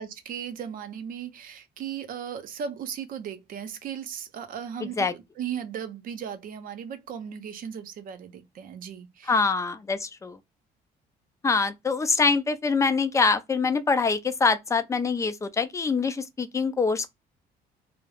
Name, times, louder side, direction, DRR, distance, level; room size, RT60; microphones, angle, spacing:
voice 1, 0.0-9.4, right 8 dB, 55° right, 0.6 m, -37 dB
voice 2, 9.3-10.4 11.4-17.1, left 4 dB, 20° left, 0.4 m, -24 dB
2.3 x 2.0 x 3.2 m
cardioid pair, 110°, 17 cm